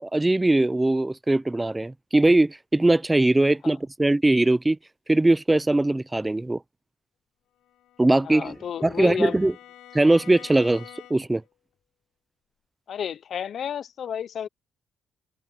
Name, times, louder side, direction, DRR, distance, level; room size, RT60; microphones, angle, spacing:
voice 1, 0.0-4.8 5.1-6.6 8.0-8.5 8.8-9.5 9.9-10.8 11.1-11.4, right 2 dB, 15° right, 0.4 m, -21 dB
Bowed string instrument, 7.6-11.5, left 13 dB, 85° left, 6.3 m, -48 dB
voice 2, 8.2-9.4 12.9-14.5, left 8 dB, 60° left, 0.6 m, -32 dB
cardioid pair, 90°, 0 cm